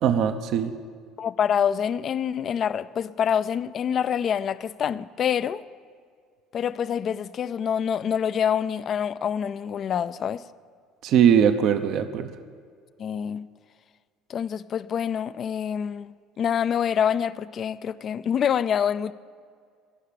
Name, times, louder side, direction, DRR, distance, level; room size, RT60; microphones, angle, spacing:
voice 1, 0.0-0.7 11.0-12.3, right 8 dB, 60° right, 0.7 m, -20 dB
voice 2, 1.2-5.6 6.5-10.4 13.0-13.5 14.3-16.1 16.4-19.1, left 8 dB, 45° left, 0.4 m, -26 dB
16.5 x 5.7 x 8.6 m
supercardioid pair, 90°, 0 cm